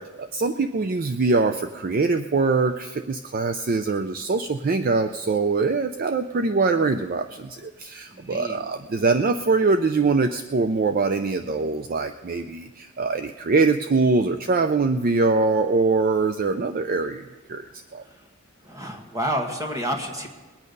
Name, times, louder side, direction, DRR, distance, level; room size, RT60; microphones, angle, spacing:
voice 1, 0.2-18.0, right 3 dB, 40° right, 9 dB, 0.4 m, -23 dB
voice 2, 8.1-8.6 18.0-18.2 18.6-20.3, equal, 15° right, 2 dB, 1.5 m, -29 dB
21.0 x 8.6 x 5.3 m, 1.2 s
head